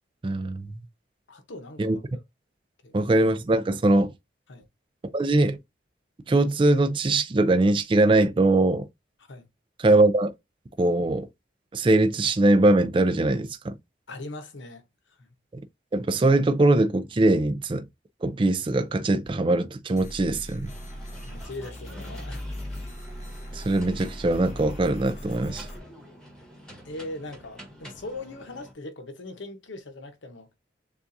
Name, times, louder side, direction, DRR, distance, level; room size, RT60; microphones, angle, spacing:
voice 1, 0.2-0.6 1.8-2.0 2.9-4.1 5.1-5.6 6.3-8.9 9.8-10.3 10.8-11.3 11.7-13.7 15.9-17.8 18.2-20.7 23.5-25.7, right 2 dB, 25° right, 0.4 m, -21 dB
voice 2, 1.3-2.0 2.8-3.1 4.5-4.7 9.3-9.5 14.1-14.8 15.2-15.3 21.3-22.4 26.8-30.5, left 2 dB, 75° left, 0.9 m, -40 dB
sound 1, 20.0-25.8, equal, 40° left, 1.2 m, -39 dB
sound 2, 20.7-28.7, equal, 5° left, 1.3 m, -47 dB
7.0 x 2.4 x 2.6 m
head